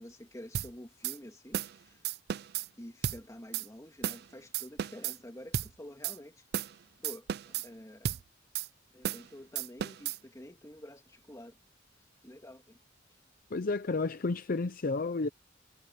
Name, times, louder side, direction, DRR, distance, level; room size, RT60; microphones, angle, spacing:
voice 1, 0.0-2.0 2.8-6.4 7.0-8.2 8.9-11.6 12.2-12.8, left 1 dB, 15° left, 2.3 m, -49 dB
sound 1, 0.5-0.7 1.0-1.2 1.5-1.7 2.0-2.7 3.0-3.2 3.5-3.7 4.0-4.2 4.5-5.2 5.5-5.7 6.0-6.2 6.5-6.7 7.0-7.7 8.0-8.2 8.5-8.7 9.0-9.3 9.6-10.2, right 9 dB, 55° right, 0.4 m, -34 dB
voice 2, 13.5-15.3, left 3 dB, 45° left, 0.6 m, -31 dB
head